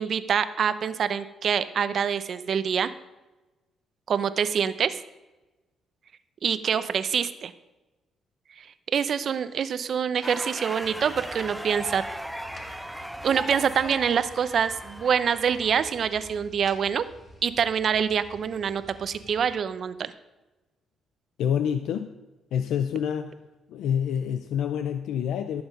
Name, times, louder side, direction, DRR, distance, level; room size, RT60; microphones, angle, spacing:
voice 1, 0.0-2.9 4.1-5.0 6.4-7.5 8.6-8.7 8.9-12.0 12.6-12.8 13.2-17.0 17.4-20.1, right 7 dB, 55° right, 13 dB, 0.7 m, -25 dB
sound 1, 10.2-16.4, equal, 5° right, 0.6 m, -38 dB
sound 2, 10.8-19.6, left 1 dB, 30° left, 2.0 m, -50 dB
voice 2, 21.4-22.2 22.5-23.3 23.7-25.6, left 8 dB, 80° left, 9 dB, 0.6 m, -27 dB
14.5 x 7.0 x 5.3 m, 1.1 s
cardioid pair, 90°, 0 cm